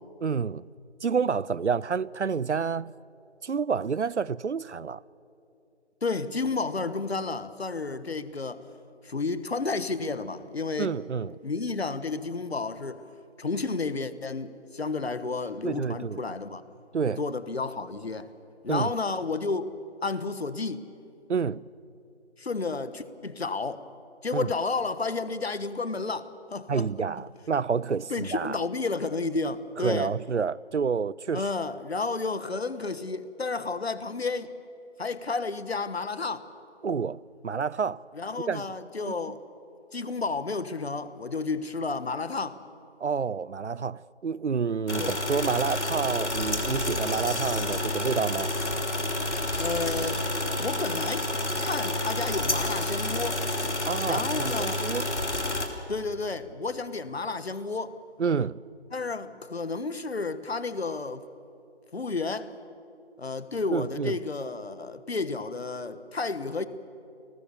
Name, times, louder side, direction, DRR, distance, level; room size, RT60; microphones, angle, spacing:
voice 1, 0.2-0.7 1.0-2.9 3.4-5.0 10.8-11.4 15.6-16.2 16.9-17.2 18.7-18.9 21.3-21.7 24.3-24.5 26.7-28.6 29.8-31.5 36.8-38.0 38.5-38.7 39.1-39.2 43.0-48.5 53.9-55.1 58.2-58.6 63.7-64.2, right 6 dB, 80° right, 0.6 m, -29 dB
voice 2, 6.0-8.6 9.0-11.0 11.4-13.0 13.4-16.6 17.2-18.3 18.6-19.7 20.0-20.9 22.4-23.9 24.2-26.9 28.1-30.1 31.3-34.5 35.0-36.4 38.1-39.4 39.9-42.6 45.0-45.1 49.6-50.2 50.6-51.3 51.6-53.4 54.0-54.8 55.9-57.9 58.9-61.2 61.9-62.5 63.2-66.7, left 3 dB, 60° left, 1.3 m, -31 dB
sound 1, 44.9-55.7, left 1 dB, 80° left, 3.2 m, -29 dB
29.5 x 20.0 x 7.0 m
figure-of-eight pair, 160°, 35 cm